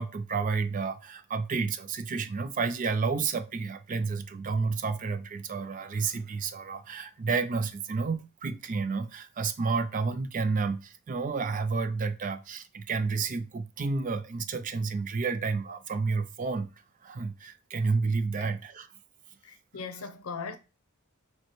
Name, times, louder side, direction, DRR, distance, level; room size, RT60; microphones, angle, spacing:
voice 1, 0.0-16.7 17.0-18.9, right 4 dB, 40° right, 0.4 m, -30 dB
voice 2, 19.4-20.6, left 5 dB, 75° left, 0.6 m, -39 dB
6.5 x 2.2 x 3.1 m
head